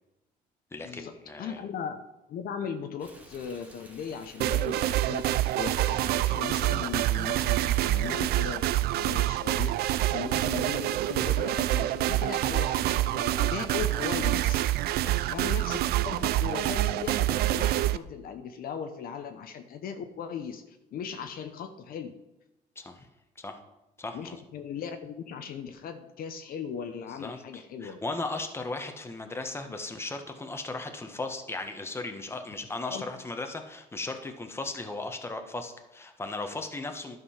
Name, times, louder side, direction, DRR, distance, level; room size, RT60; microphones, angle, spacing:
voice 1, 0.7-1.6 15.0-15.2 22.8-23.1 23.4-23.6 24.0-24.4 27.2-37.2, left 2 dB, 15° left, 5 dB, 1.1 m, -37 dB
voice 2, 1.4-2.0 2.3-5.2 5.5-9.7 10.1-14.6 15.2-22.1 24.1-28.0 32.9-33.0, left 7 dB, 60° left, 7 dB, 0.9 m, -38 dB
Stream, 3.0-8.5, right 1 dB, 10° right, 1.5 m, -53 dB
sound 1, 4.4-18.0, right 14 dB, 70° right, 0.4 m, -27 dB
11.0 x 5.4 x 5.7 m, 0.94 s
cardioid pair, 110°, 17 cm